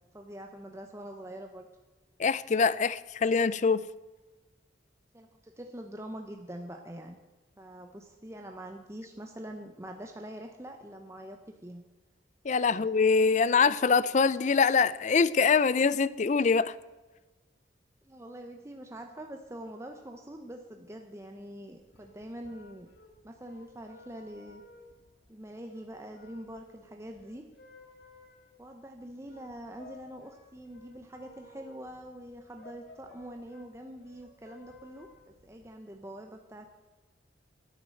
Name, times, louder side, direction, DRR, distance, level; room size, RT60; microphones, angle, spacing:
voice 1, 0.1-1.7 5.1-7.2 7.6-11.8 12.7-12.9 18.0-22.9 23.2-24.6 25.3-27.4 28.6-36.7, right 1 dB, 15° right, 4 dB, 0.8 m, -44 dB
voice 2, 2.2-3.8 12.4-16.7, left 5 dB, 40° left, 18 dB, 0.4 m, -24 dB
sound 1, 21.7-35.7, left 2 dB, 60° left, 2.0 m, -56 dB
10.5 x 9.6 x 7.6 m, 1.2 s
head